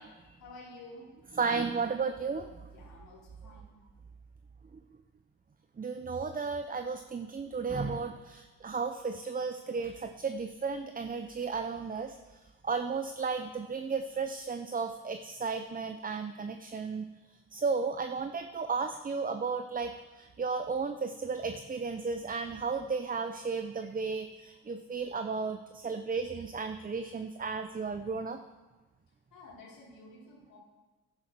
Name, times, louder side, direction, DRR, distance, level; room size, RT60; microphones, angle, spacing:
voice 1, 0.2-1.1 2.6-3.8 29.3-30.6, left 2 dB, 75° left, -8 dB, 4.0 m, -51 dB
voice 2, 1.3-2.7 4.7-4.8 5.8-17.1 17.5-28.4, right 5 dB, 25° right, 8 dB, 0.7 m, -34 dB
11.0 x 10.0 x 4.6 m, 1.2 s
supercardioid pair, 60°, 36 cm